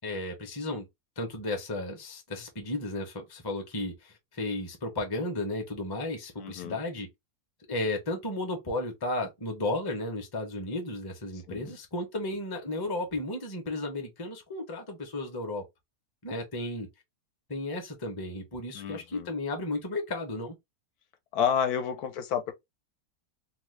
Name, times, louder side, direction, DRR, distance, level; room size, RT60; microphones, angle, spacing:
voice 1, 0.0-0.9 1.2-7.1 7.7-15.6 16.2-16.9 17.5-20.6, left 2 dB, 25° left, 0.5 m, -34 dB
voice 2, 6.4-6.8 11.5-11.8 18.7-19.3 21.3-22.5, left 8 dB, 85° left, 1.1 m, -30 dB
2.9 x 2.1 x 3.1 m
omnidirectional pair, 1.6 m